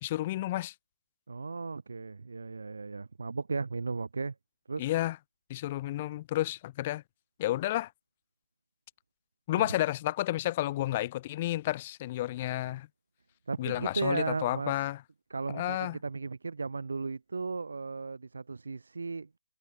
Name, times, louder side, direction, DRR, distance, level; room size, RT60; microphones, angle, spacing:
voice 1, 0.0-0.7 4.8-5.2 5.5-7.0 7.4-7.9 9.5-12.9 13.6-15.0 15.5-16.0, left 15 dB, 20° left, 0.6 m, -31 dB
voice 2, 1.3-4.3 4.7-4.9 9.6-9.7 13.5-14.7 15.3-19.3, right 4 dB, 75° right, 1.6 m, -35 dB
hypercardioid pair, 170°, 0 cm